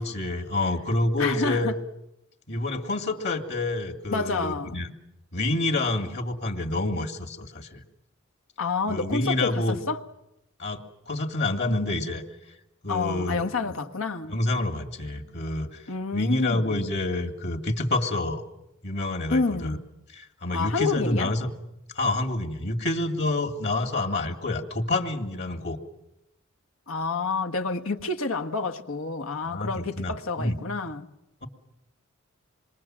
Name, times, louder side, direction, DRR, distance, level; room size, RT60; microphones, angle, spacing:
voice 1, 0.0-1.7 2.5-4.9 5.3-7.8 8.9-9.8 10.6-12.2 12.8-13.5 14.3-18.4 18.8-19.8 20.1-21.5 21.9-25.8 29.5-30.6, left 2 dB, 55° left, 2.5 m, -28 dB
voice 2, 1.2-1.7 4.1-4.8 8.6-10.0 12.9-14.4 15.9-16.8 19.3-19.8 20.5-21.3 26.9-31.1, left 4 dB, 80° left, 1.5 m, -28 dB
27.0 x 22.5 x 7.6 m
head